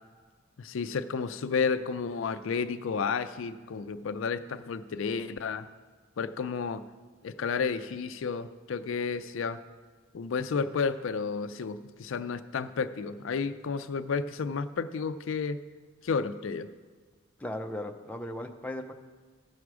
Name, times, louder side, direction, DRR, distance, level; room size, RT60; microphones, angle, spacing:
voice 1, 0.6-5.7 6.2-6.8 7.2-9.6 10.1-15.6 16.0-16.7, left 5 dB, 75° left, 12 dB, 0.4 m, -31 dB
voice 2, 17.4-18.9, left 1 dB, 5° left, 3 dB, 0.5 m, -37 dB
15.0 x 6.1 x 4.7 m, 1.5 s
head